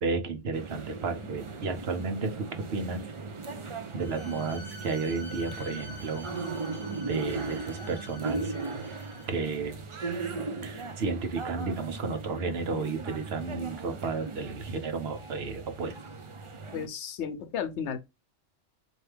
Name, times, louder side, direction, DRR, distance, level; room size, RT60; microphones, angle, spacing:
voice 1, 0.0-3.0 3.9-6.3 7.0-8.5 9.3-9.8 10.6-16.1, right 4 dB, 65° right, 1.0 m, -32 dB
sound 1, 0.5-16.9, right 3 dB, 40° right, 0.4 m, -38 dB
Bowed string instrument, 4.0-9.5, left 1 dB, 45° left, 0.8 m, -47 dB
voice 2, 16.7-18.0, left 7 dB, 75° left, 0.9 m, -33 dB
4.5 x 2.7 x 3.3 m
omnidirectional pair, 1.2 m